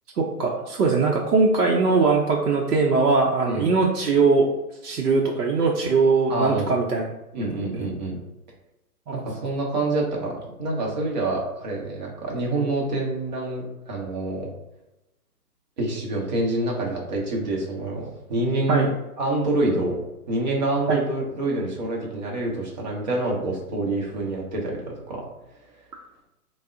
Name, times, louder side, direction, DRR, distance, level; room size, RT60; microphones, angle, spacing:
voice 1, 0.2-4.5 4.8-7.1 7.7-7.9 9.1-9.2 18.7-18.9 20.9-21.0, right 4 dB, 75° right, -1 dB, 0.6 m, -21 dB
voice 2, 6.3-6.7 7.3-8.2 9.1-14.5 15.8-18.9 19.2-20.0 20.3-24.8 25.1-25.2, right 2 dB, 30° right, -2 dB, 0.6 m, -26 dB
3.3 x 2.0 x 2.5 m, 0.95 s
figure-of-eight pair, 135°, 47 cm